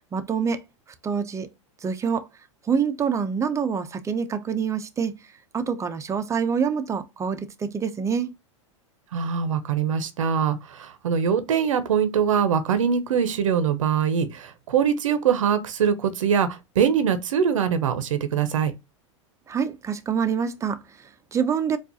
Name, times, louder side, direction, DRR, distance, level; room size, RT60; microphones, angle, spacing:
voice 1, 0.1-0.6 1.0-1.5 1.8-2.3 2.7-5.1 5.5-8.3 19.5-21.8, right 6 dB, 20° right, 0.5 m, -26 dB
voice 2, 9.1-18.7, right 7 dB, 85° right, 0.7 m, -23 dB
4.4 x 2.4 x 2.8 m
hypercardioid pair, 110°, 16 cm